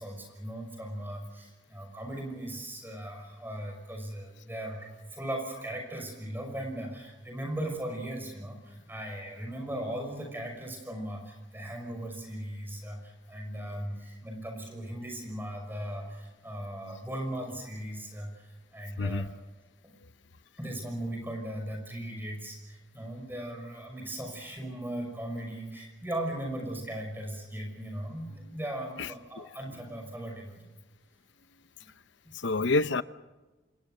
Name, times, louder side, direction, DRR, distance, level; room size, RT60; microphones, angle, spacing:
voice 1, 0.0-19.3 19.8-19.9 20.6-30.6 32.6-32.7, right 1 dB, 10° right, 5.9 m, -38 dB
voice 2, 32.3-33.0, left 3 dB, 80° left, 0.8 m, -27 dB
27.0 x 21.5 x 6.6 m
head